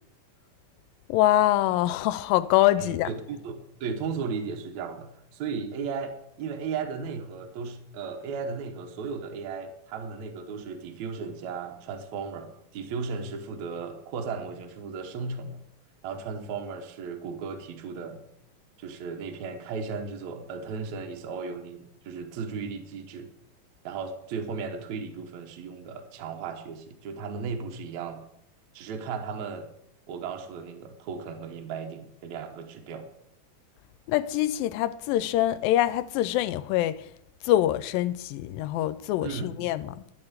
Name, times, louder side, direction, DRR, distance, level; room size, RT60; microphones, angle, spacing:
voice 1, 1.1-3.1 34.1-37.0 37.4-40.0, left 14 dB, 80° left, 2.1 m, -24 dB
voice 2, 2.8-15.6 16.0-18.2 18.8-23.3 23.8-28.2 28.7-29.7 30.1-33.1 39.2-39.6, right 5 dB, 65° right, 2.1 m, -35 dB
12.0 x 5.5 x 7.9 m
omnidirectional pair, 4.4 m